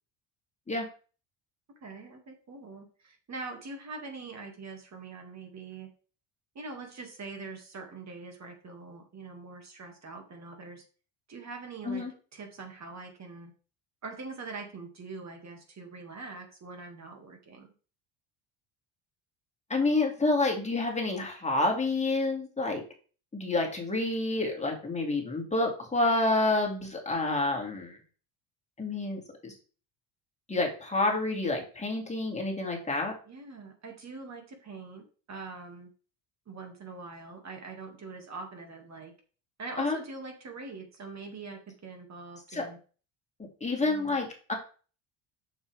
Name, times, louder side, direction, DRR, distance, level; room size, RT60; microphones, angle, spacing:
voice 1, 1.8-5.9 6.5-10.8 11.3-12.1 12.3-13.5 14.0-17.7 33.3-35.9 36.5-39.1 39.6-42.8 43.8-44.2, right 3 dB, 35° right, 4 dB, 2.2 m, -43 dB
voice 2, 19.7-22.8 23.3-28.0 28.8-29.5 30.5-33.1 39.8-40.0 42.5-42.7 43.6-44.5, left 2 dB, 15° left, 0 dB, 2.2 m, -28 dB
7.0 x 6.7 x 3.4 m, 0.38 s
supercardioid pair, 90°, 44 cm